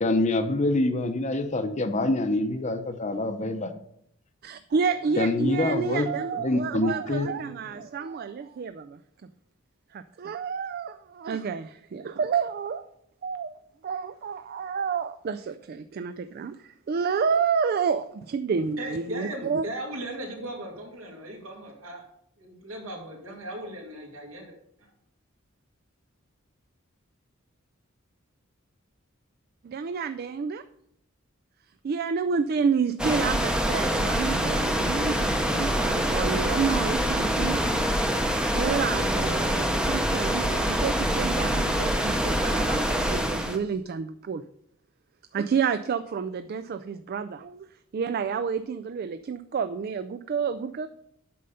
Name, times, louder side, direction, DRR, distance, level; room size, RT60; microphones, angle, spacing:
voice 1, 0.0-3.7 5.2-6.1 6.4-7.3, left 2 dB, 35° left, 8 dB, 0.7 m, -25 dB
voice 2, 4.4-9.0 9.9-12.9 13.2-13.5 13.8-19.6 29.6-30.6 31.8-37.6 38.5-44.4 45.3-47.7 47.9-50.9, right 6 dB, 45° right, 10 dB, 0.3 m, -29 dB
voice 3, 18.8-22.0 22.4-24.5, right 1 dB, 80° right, 0 dB, 2.4 m, -37 dB
sound 1, 33.0-43.6, equal, 5° right, 0.7 m, -25 dB
8.5 x 5.5 x 5.5 m, 0.73 s
head